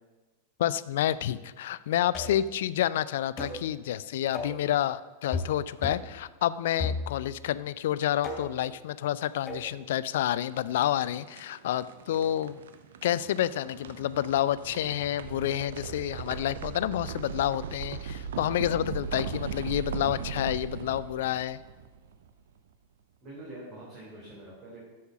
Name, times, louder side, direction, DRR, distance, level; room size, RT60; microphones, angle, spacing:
voice 1, 0.6-12.6 13.0-21.6, left 12 dB, 55° left, 17 dB, 0.3 m, -29 dB
sound 1, 2.1-2.5 3.4-3.6 4.3-4.6 5.3-5.6 5.8-6.1 6.8-7.4 8.2-8.6 9.5-9.7, left 3 dB, 25° left, 3.0 m, -34 dB
sound 2, 10.4-22.5, right 7 dB, 60° right, 0.6 m, -39 dB
voice 2, 23.2-24.8, right 1 dB, 35° right, -6 dB, 3.5 m, -45 dB
7.8 x 7.0 x 5.8 m, 1.2 s
figure-of-eight pair, 90°, 0 cm